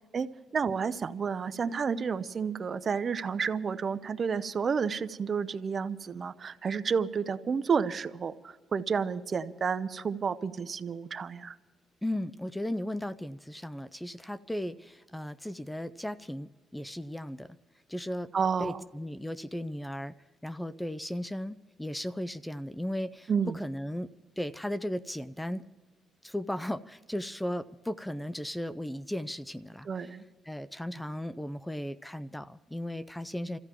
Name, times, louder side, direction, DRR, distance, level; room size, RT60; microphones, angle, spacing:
voice 1, 0.1-11.5 18.3-18.8 23.3-23.6 29.8-30.2, right 6 dB, 45° right, 12 dB, 0.7 m, -31 dB
voice 2, 12.0-17.6 17.9-18.3 18.6-20.1 20.4-24.1 24.4-25.6 26.2-29.9 30.5-33.6, left 1 dB, 5° left, 16 dB, 0.4 m, -36 dB
28.5 x 15.0 x 3.0 m, 1.3 s
cardioid pair, 90°, 0 cm